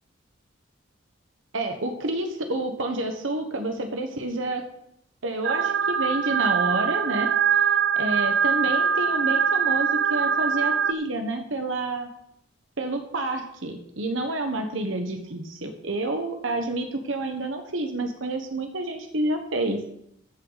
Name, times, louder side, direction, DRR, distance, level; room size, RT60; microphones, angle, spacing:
voice 1, 1.5-4.6 5.2-7.3 8.0-12.1 12.8-19.9, right 2 dB, 70° right, 5 dB, 1.2 m, -29 dB
sound 1, 5.4-10.9, right 7 dB, 55° right, 0.4 m, -23 dB
14.5 x 8.0 x 4.1 m, 0.77 s
head